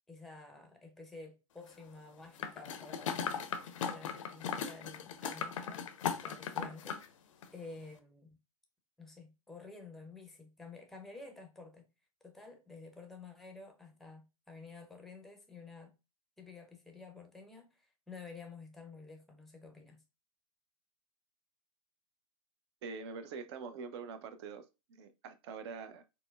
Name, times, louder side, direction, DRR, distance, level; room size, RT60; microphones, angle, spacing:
voice 1, 0.1-5.9 6.2-7.0 7.5-8.4 9.0-11.9 12.2-15.9 16.4-20.0, left 3 dB, ahead, 0.6 m, -51 dB
sound 1, 2.4-7.1 7.4-7.5, left 7 dB, 65° left, 0.5 m, -38 dB
voice 2, 22.8-24.7 25.0-26.0, right 5 dB, 50° right, 0.6 m, -44 dB
4.2 x 2.0 x 2.2 m
hypercardioid pair, 110°, 18 cm